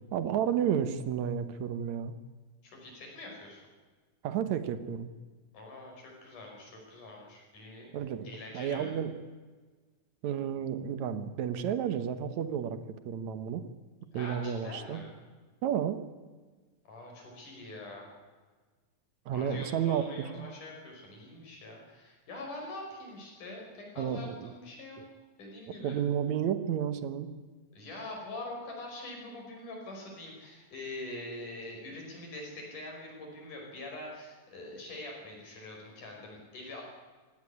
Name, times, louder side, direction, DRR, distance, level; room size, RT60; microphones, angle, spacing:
voice 1, 0.1-2.1 4.2-5.1 7.9-8.3 8.5-9.2 10.2-12.8 13.1-13.6 14.1-15.0 15.6-16.0 19.3-20.5 24.0-24.5 25.0-25.1 25.8-27.3, right 9 dB, 70° right, 12 dB, 2.3 m, -31 dB
voice 2, 2.6-3.6 5.5-7.9 8.2-8.9 14.1-15.1 16.9-18.1 19.3-25.0 25.4-26.0 27.7-36.8, left 2 dB, 85° left, 0 dB, 7.0 m, -44 dB
17.5 x 16.5 x 9.9 m, 1.4 s
omnidirectional pair, 3.5 m